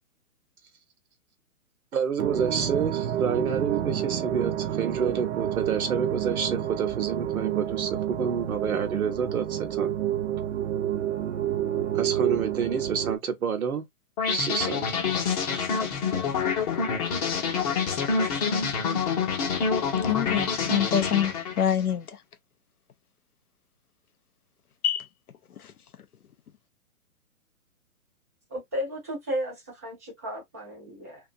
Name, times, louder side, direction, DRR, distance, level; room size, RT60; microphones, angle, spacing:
voice 1, 1.9-9.9 11.9-13.8 14.3-15.0, right 6 dB, 75° right, 0.9 m, -29 dB
sound 1, 2.2-13.2, right 11 dB, 55° right, 0.6 m, -29 dB
sound 2, 14.2-21.8, left 5 dB, 30° left, 0.6 m, -27 dB
voice 2, 20.0-22.2 24.8-25.1 25.6-25.7, left 9 dB, 80° left, 0.7 m, -26 dB
voice 3, 28.5-31.3, equal, 15° right, 0.4 m, -34 dB
2.4 x 2.3 x 2.6 m
figure-of-eight pair, 130°, 44 cm